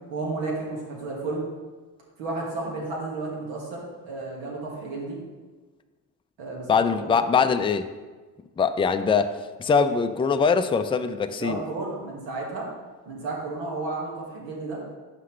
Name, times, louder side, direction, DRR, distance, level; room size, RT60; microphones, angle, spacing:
voice 1, 0.1-1.4 2.2-5.2 6.4-7.2 11.4-12.7 13.1-14.8, right 3 dB, 80° right, -2 dB, 2.0 m, -32 dB
voice 2, 6.7-7.9 8.6-11.6, left 5 dB, 15° left, 8 dB, 0.4 m, -22 dB
8.1 x 5.6 x 3.2 m, 1.3 s
supercardioid pair, 60°, 45 cm